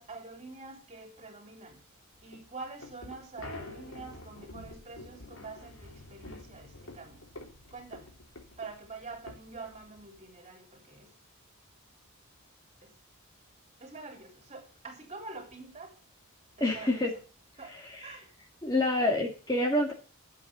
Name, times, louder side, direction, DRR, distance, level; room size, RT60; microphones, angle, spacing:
voice 1, 0.0-1.8 2.2-7.2 7.7-8.1 8.6-11.1 12.8-12.9 13.8-16.0 16.5-17.1 17.6-18.3, right 3 dB, 30° right, 3.8 m, -46 dB
sound 1, 2.2-10.3, left 2 dB, 60° left, 3.5 m, -48 dB
voice 2, 16.6-17.1 17.9-18.2 18.6-19.9, left 1 dB, 15° left, 2.1 m, -27 dB
11.5 x 8.3 x 6.8 m
head